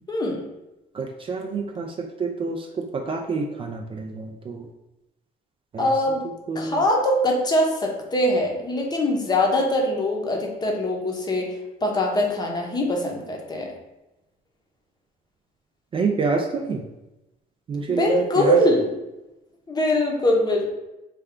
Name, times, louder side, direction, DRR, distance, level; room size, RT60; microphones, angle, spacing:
voice 1, 0.1-0.4 5.8-6.2 6.5-11.6 11.8-13.7 17.9-18.9 19.7-20.7, left 1 dB, 25° left, 0 dB, 0.7 m, -22 dB
voice 2, 0.9-4.7 5.7-5.9 6.5-6.8 15.9-16.8 17.7-18.6, right 4 dB, 30° right, 2 dB, 0.3 m, -27 dB
3.3 x 2.3 x 3.6 m, 0.97 s
cardioid pair, 110°, 17 cm